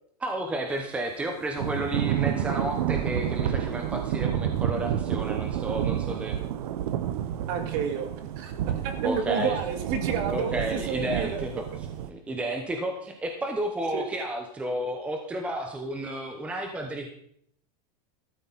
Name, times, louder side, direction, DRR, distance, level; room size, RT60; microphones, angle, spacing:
voice 1, 0.2-6.4 9.0-9.6 10.3-17.1, right 1 dB, 5° right, 4 dB, 0.9 m, -32 dB
Thunder / Rain, 1.6-12.1, right 10 dB, 75° right, 0.9 m, -30 dB
voice 2, 7.5-8.1 8.4-11.4 13.9-14.1, right 6 dB, 40° right, 7 dB, 1.9 m, -30 dB
13.5 x 12.5 x 4.1 m, 0.67 s
supercardioid pair, 180°, 20 cm